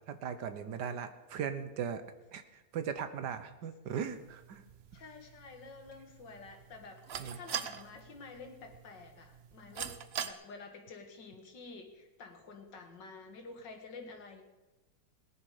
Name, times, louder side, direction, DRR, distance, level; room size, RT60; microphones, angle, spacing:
voice 1, 0.1-2.0 2.3-4.6 7.2-7.4, right 7 dB, 75° right, 10 dB, 1.6 m, -38 dB
sound 1, 3.9-10.3, right 8 dB, 60° right, 0.6 m, -44 dB
voice 2, 4.9-14.4, left 4 dB, 85° left, 4 dB, 2.3 m, -50 dB
18.5 x 10.5 x 5.0 m, 1.1 s
omnidirectional pair, 1.9 m